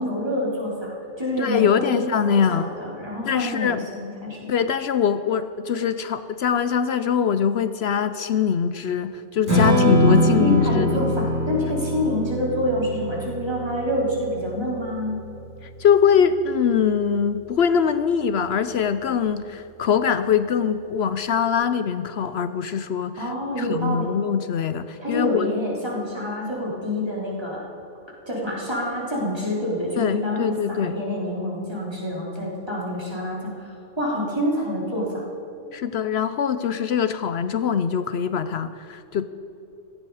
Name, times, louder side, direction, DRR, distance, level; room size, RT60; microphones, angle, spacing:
voice 1, 0.0-4.6 10.2-15.2 23.2-24.1 25.0-27.7 28.3-35.3, left 1 dB, 20° right, -4 dB, 3.7 m, -27 dB
voice 2, 1.4-2.7 3.2-3.8 4.5-11.1 15.6-25.5 30.0-31.0 35.7-39.3, left 7 dB, 65° left, 12 dB, 0.8 m, -23 dB
Strum, 9.5-15.8, equal, 65° right, 5.2 m, -23 dB
16.5 x 15.5 x 4.9 m, 2.9 s
omnidirectional pair, 1.2 m